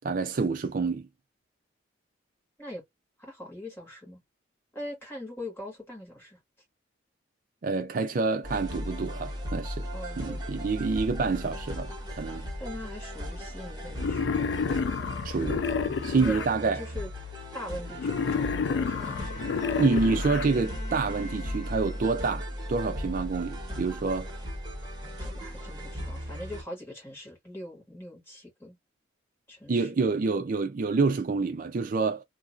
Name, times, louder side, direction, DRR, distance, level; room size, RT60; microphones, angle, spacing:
voice 1, 0.0-1.1 7.6-9.9 10.2-11.9 12.2-12.5 15.2-15.6 16.0-16.8 19.8-24.3 29.7-32.2, right 4 dB, 45° right, 0.4 m, -27 dB
voice 2, 3.2-4.2 4.7-6.4 9.9-10.4 12.6-14.6 16.2-17.1 17.5-19.7 25.0-28.7 29.5-30.0, left 1 dB, 15° left, 1.6 m, -42 dB
sound 1, 8.4-26.6, equal, 20° right, 1.2 m, -37 dB
Wild animals, 14.0-16.5 18.0-20.5, left 5 dB, 65° left, 0.3 m, -29 dB
Bowed string instrument, 18.3-22.4, left 1 dB, 40° left, 1.0 m, -45 dB
2.8 x 2.5 x 2.5 m
head